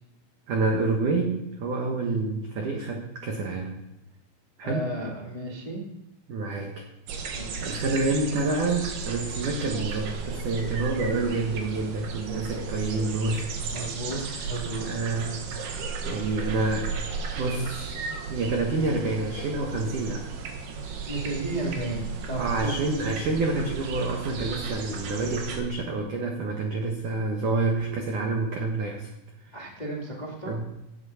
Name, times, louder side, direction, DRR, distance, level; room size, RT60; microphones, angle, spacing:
voice 1, 0.5-3.8 4.6-4.9 6.3-6.8 7.6-13.5 14.8-15.4 15.7-17.0 17.4-18.0 18.3-20.2 22.4-29.1 30.5-30.6, right 3 dB, 80° right, 1 dB, 1.8 m, -28 dB
voice 2, 4.6-5.8 6.5-6.6 7.3-7.7 13.7-14.8 15.1-15.2 21.1-22.8 29.5-30.6, right 2 dB, 45° left, -2 dB, 0.5 m, -33 dB
sound 1, 7.1-25.6, right 5 dB, 60° right, 3.2 m, -35 dB
16.5 x 8.9 x 5.7 m, 0.92 s
omnidirectional pair, 5.8 m